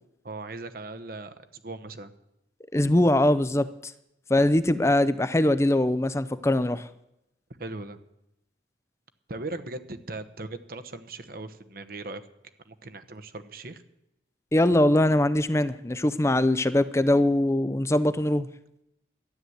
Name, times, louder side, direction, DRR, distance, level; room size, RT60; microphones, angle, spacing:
voice 1, 0.2-2.1 7.6-8.0 9.3-12.2 12.6-13.8, right 2 dB, 55° right, 9 dB, 0.9 m, -38 dB
voice 2, 2.7-3.9 4.3-6.9 14.5-18.5, left 1 dB, 15° left, 14 dB, 0.5 m, -22 dB
13.0 x 9.5 x 7.9 m, 0.84 s
head